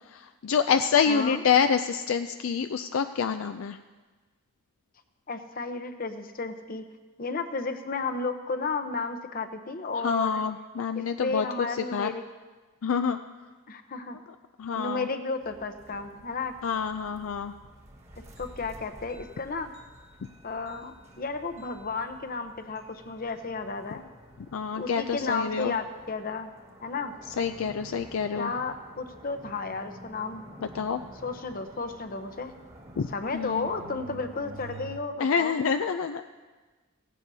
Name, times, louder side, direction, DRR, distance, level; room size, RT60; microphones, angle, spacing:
voice 1, 0.1-3.8 10.0-11.5 11.9-12.1 12.8-13.2 14.6-15.1 16.6-17.5 24.5-25.7 27.4-28.5 30.6-31.0 33.0-33.1 33.3-33.7 35.2-36.2, left 6 dB, 65° left, 9 dB, 0.4 m, -27 dB
voice 2, 1.1-1.4 5.3-6.9 7.2-10.4 10.9-12.2 13.7-14.2 14.8-16.5 18.4-19.7 20.4-24.1 24.7-26.5 26.8-27.1 28.4-30.5 31.2-32.5 33.1-35.6, left 4 dB, 40° left, 7 dB, 0.8 m, -33 dB
sound 1, 15.4-35.0, right 1 dB, 30° right, 1.4 m, -49 dB
16.5 x 15.5 x 2.7 m, 1.3 s
head